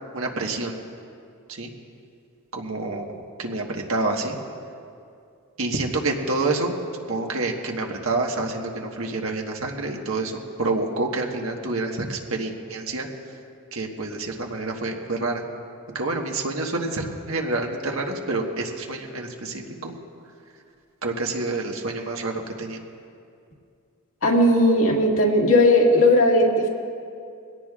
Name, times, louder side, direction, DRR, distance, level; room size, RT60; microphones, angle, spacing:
voice 1, 0.1-0.8 1.5-1.7 2.5-4.4 5.6-6.7 7.1-13.1 13.7-15.4 15.9-19.9 21.0-22.8, right 2 dB, 70° right, 1 dB, 1.5 m, -28 dB
voice 2, 24.2-26.7, left 1 dB, 70° left, -1 dB, 2.1 m, -17 dB
22.5 x 17.5 x 2.5 m, 2.4 s
head